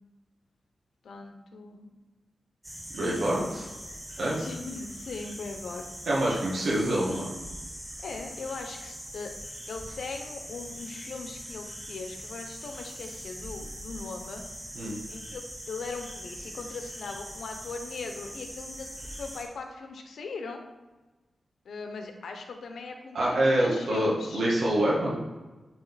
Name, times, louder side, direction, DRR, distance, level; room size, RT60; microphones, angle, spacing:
voice 1, 1.0-1.9 3.0-3.5 4.4-5.9 8.0-9.3 9.7-14.4 15.1-20.6 21.6-24.4, left 4 dB, 90° left, 4 dB, 0.7 m, -39 dB
sound 1, 2.6-19.4, equal, 15° right, 1.9 m, -42 dB
voice 2, 2.9-3.4 4.2-4.4 6.1-7.3 14.7-15.0 23.1-25.2, right 1 dB, 85° right, -5 dB, 1.5 m, -26 dB
8.7 x 3.0 x 4.1 m, 1.2 s
wide cardioid pair, 100°, 0 cm